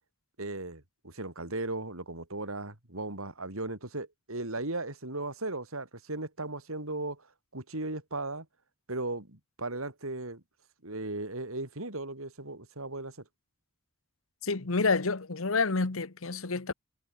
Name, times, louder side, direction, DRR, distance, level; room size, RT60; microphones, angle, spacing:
voice 1, 0.4-7.2 7.5-8.5 8.9-10.4 10.8-13.2, right 2 dB, 85° right, 4.8 m, -37 dB
voice 2, 14.4-16.7, left 4 dB, 75° left, 1.3 m, -28 dB
head